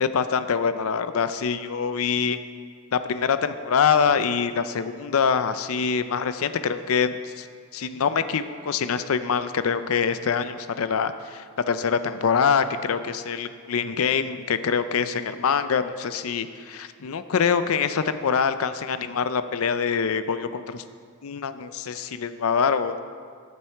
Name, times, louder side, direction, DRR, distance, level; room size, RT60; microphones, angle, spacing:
voice 1, 0.0-2.4 2.9-7.5 7.7-20.8 21.2-23.0, left 6 dB, 75° left, 11 dB, 0.5 m, -24 dB
12.5 x 7.4 x 4.5 m, 2.1 s
head